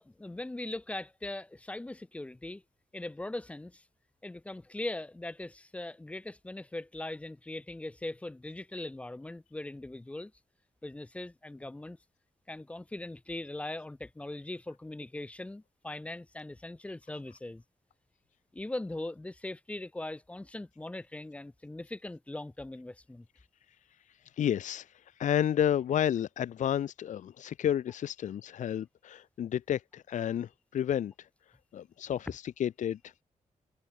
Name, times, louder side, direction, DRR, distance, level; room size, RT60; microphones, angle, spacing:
voice 1, 0.0-2.6 2.9-3.8 4.2-10.3 10.8-12.0 12.5-17.6 18.5-23.3, left 2 dB, 10° left, 0.3 m, -40 dB
voice 2, 24.4-31.3 31.7-33.1, left 10 dB, 75° left, 0.4 m, -31 dB
wide cardioid pair, 145°, 13 cm